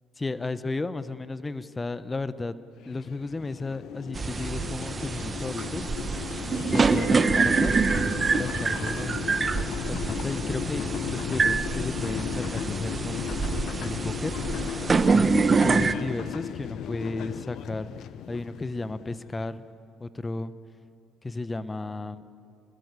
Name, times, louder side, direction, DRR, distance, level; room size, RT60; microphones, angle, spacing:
voice 1, 0.2-2.5 2.9-5.9 6.7-7.9 8.4-9.6 9.9-13.5 13.8-14.3 15.1-17.9 18.3-19.6 20.0-20.5 21.2-22.2, left 3 dB, 25° left, 13 dB, 1.1 m, -34 dB
sound 1, 2.8-19.5, left 10 dB, 65° left, 0.8 m, -35 dB
sound 2, 4.1-15.9, right 4 dB, 35° right, 1.1 m, -26 dB
27.5 x 20.5 x 8.3 m, 2.4 s
hypercardioid pair, 60°, 0 cm